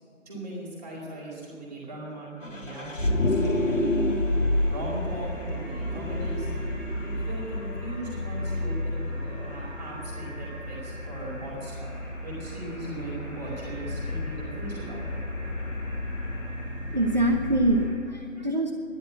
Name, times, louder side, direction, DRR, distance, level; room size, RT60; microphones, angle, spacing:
voice 1, 0.3-3.9 4.6-6.5 7.0-12.0 12.2-15.2, right 1 dB, 10° right, -8 dB, 4.3 m, -39 dB
Vehicle, 2.4-17.9, left 1 dB, 75° left, 1.8 m, -30 dB
sound 1, 2.7-17.9, equal, 10° left, 4.3 m, -46 dB
voice 2, 16.9-18.7, right 1 dB, 35° right, 2 dB, 0.9 m, -24 dB
14.0 x 11.5 x 7.5 m, 2.6 s
figure-of-eight pair, 165°, 38 cm